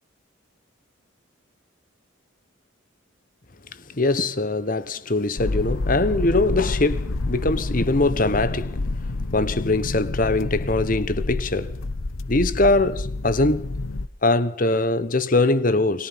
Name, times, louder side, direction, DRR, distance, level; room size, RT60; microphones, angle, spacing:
voice 1, 4.0-8.7 9.3-11.7 12.3-13.7 14.2-16.1, left 2 dB, 40° left, 1.2 m, -22 dB
sound 1, 5.4-14.1, left 2 dB, 85° left, 1.0 m, -28 dB
30.0 x 22.0 x 5.8 m
head